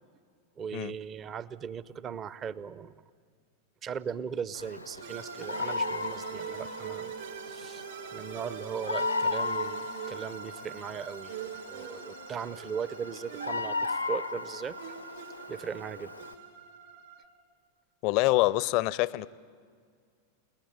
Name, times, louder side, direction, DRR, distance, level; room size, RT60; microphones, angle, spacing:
voice 1, 0.6-3.0 3.8-7.1 7.4-7.8 8.1-14.8 15.5-16.2, right 7 dB, 30° right, 18 dB, 0.7 m, -38 dB
Bird vocalization bird call bird song, 4.5-16.3, left 3 dB, 90° left, 0.8 m, -36 dB
sound 1, 5.0-17.2, right 10 dB, 55° right, 3.3 m, -43 dB
voice 2, 18.0-19.3, left 19 dB, 45° left, 22 dB, 0.6 m, -26 dB
29.5 x 19.5 x 8.9 m, 2.1 s
figure-of-eight pair, 90°, 0 cm